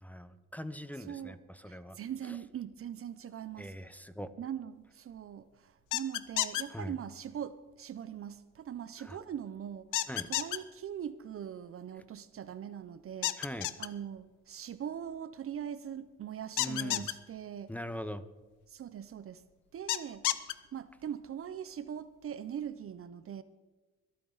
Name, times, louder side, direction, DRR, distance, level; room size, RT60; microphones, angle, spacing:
voice 1, 0.0-2.0 2.2-2.4 3.6-4.3 6.7-7.0 9.0-9.2 10.1-10.3 13.4-13.7 16.6-17.1 17.7-18.2, equal, 5° left, 0.7 m, -41 dB
voice 2, 1.1-1.4 1.7-3.7 4.4-13.4 13.8-17.7 18.7-19.5 19.7-23.4, right 9 dB, 45° right, 0.6 m, -41 dB
sound 1, 5.9-6.6 9.9-10.6 13.2-13.9 16.6-17.1 19.9-20.5, left 15 dB, 85° left, 0.7 m, -30 dB
23.0 x 8.7 x 4.0 m
cardioid pair, 90°, 30 cm